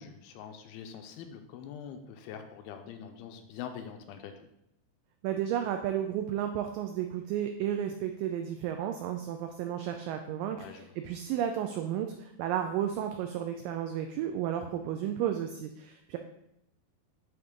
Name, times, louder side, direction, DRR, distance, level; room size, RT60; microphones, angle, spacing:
voice 1, 0.0-4.3 10.5-10.9, left 8 dB, 85° left, 6 dB, 2.4 m, -44 dB
voice 2, 5.2-16.2, right 10 dB, 85° right, 6 dB, 1.9 m, -33 dB
10.5 x 3.8 x 3.6 m, 0.80 s
omnidirectional pair, 4.5 m